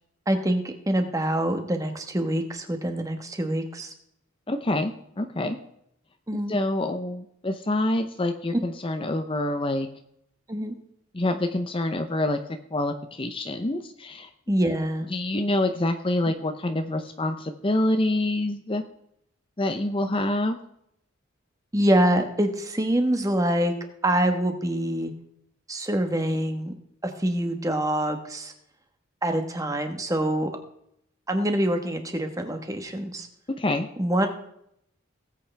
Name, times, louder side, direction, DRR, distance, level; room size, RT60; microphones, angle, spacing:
voice 1, 0.3-3.9 6.3-6.6 10.5-10.8 14.5-15.1 21.7-23.7 24.0-25.1 25.7-26.7 27.0-28.5 29.2-30.5 31.3-33.3 34.0-34.3, right 1 dB, 15° right, 5 dB, 1.3 m, -25 dB
voice 2, 4.5-5.6 6.5-9.9 11.1-12.4 12.7-14.3 15.1-18.8 19.6-20.6 33.6-33.9, left 1 dB, 25° left, 7 dB, 0.7 m, -26 dB
18.5 x 8.3 x 3.4 m, 0.74 s
head